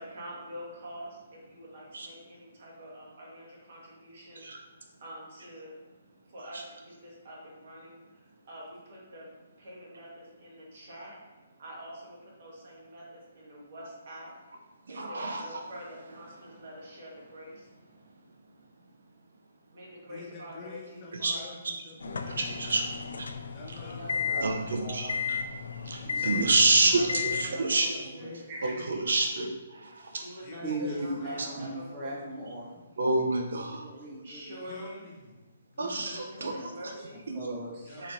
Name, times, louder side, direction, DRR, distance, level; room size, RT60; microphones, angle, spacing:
voice 1, 0.0-5.8 6.3-9.3 9.6-11.2 11.6-14.3 14.9-17.7 19.7-21.5 23.8-24.6 26.2-26.6 26.9-27.9 28.2-28.5 30.1-32.2 34.2-35.1 35.9-37.3 37.9-38.1, equal, 45° right, -4 dB, 1.4 m, -46 dB
voice 2, 14.9-15.6 21.2-21.3 22.0-22.8 23.2-23.3 24.4-25.4 25.8-27.9 28.6-30.2 30.8-31.1 31.6-31.7 33.0-33.8 35.8-36.5 37.3-37.4 38.0-38.1, right 3 dB, 80° right, 2 dB, 0.5 m, -28 dB
voice 3, 20.0-22.4 23.5-24.7 26.3-29.0 30.4-31.5 34.7-36.2 37.9-38.1, left 3 dB, 20° left, -3 dB, 0.6 m, -48 dB
sound 1, 22.0-27.5, left 6 dB, 85° left, 0.3 m, -34 dB
voice 4, 24.8-25.3 26.0-26.5 27.6-27.8 28.2-28.7 30.6-32.7 33.8-34.6 36.4-36.7 37.3-38.0, right 2 dB, 25° right, -5 dB, 0.6 m, -39 dB
4.3 x 3.0 x 2.6 m, 1.3 s
hypercardioid pair, 170°, 0 cm